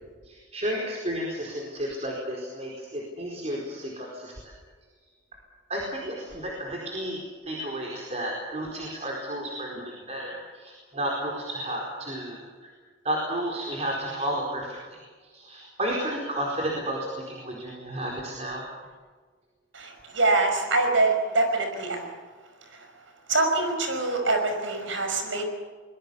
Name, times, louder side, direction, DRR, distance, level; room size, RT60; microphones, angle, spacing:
voice 1, 0.2-4.5 5.7-12.7 13.0-18.7, right 1 dB, 35° right, -1 dB, 4.5 m, -32 dB
voice 2, 19.7-22.1 22.7-22.9 23.3-25.5, right 2 dB, 75° right, 5 dB, 5.5 m, -24 dB
24.0 x 21.5 x 7.1 m, 1.5 s
head